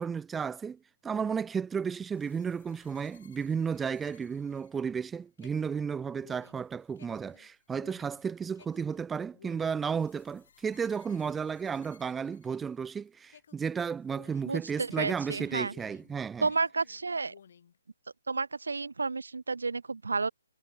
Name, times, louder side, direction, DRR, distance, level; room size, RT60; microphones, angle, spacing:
voice 1, 0.0-16.5, right 6 dB, 10° right, 0.8 m, -33 dB
sound 1, 2.1-13.0 13.3-16.2 16.5-17.8, left 8 dB, 50° left, 4.3 m, -59 dB
voice 2, 14.4-15.7 16.4-17.3 18.3-20.3, right 4 dB, 70° right, 1.1 m, -31 dB
figure-of-eight pair, 135°, 0 cm